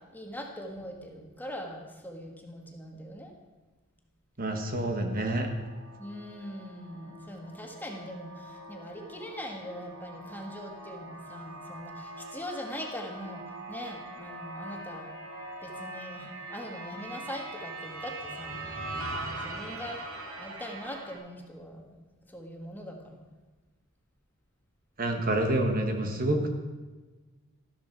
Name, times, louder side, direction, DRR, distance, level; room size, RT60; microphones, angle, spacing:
voice 1, 0.1-3.3 6.0-13.4 13.7-15.1 15.6-18.7 18.9-20.0 20.4-22.0 22.3-23.2, equal, 10° left, 1 dB, 1.5 m, -41 dB
voice 2, 4.4-5.5 25.0-26.5, right 1 dB, 40° right, 4 dB, 1.4 m, -28 dB
sound 1, 5.1-21.1, right 2 dB, 70° right, 2.4 m, -42 dB
13.0 x 12.5 x 4.6 m, 1.2 s
head